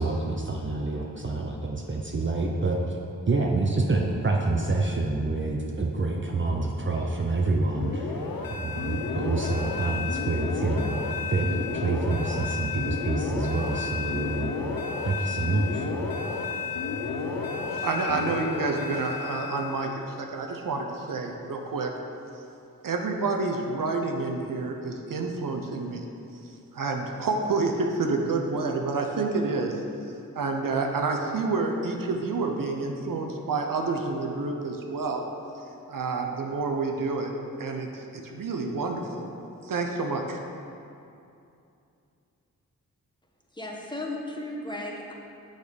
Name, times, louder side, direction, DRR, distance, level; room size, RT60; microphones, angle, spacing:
voice 1, 0.0-3.0 3.3-8.2 8.5-11.0 11.3-14.5 15.0-15.9, right 3 dB, 35° right, 0 dB, 0.7 m, -27 dB
sound 1, 7.8-19.9, left 4 dB, 75° left, 0.8 m, -31 dB
voice 2, 17.7-21.9 22.8-26.0 26.7-29.8 30.3-35.2 35.9-37.3 37.6-39.3 39.6-40.4, right 3 dB, 65° right, 2 dB, 0.8 m, -29 dB
voice 3, 43.5-45.1, left 1 dB, 15° left, -2 dB, 1.2 m, -35 dB
6.4 x 5.1 x 5.1 m, 2.6 s
cardioid pair, 40°, 35 cm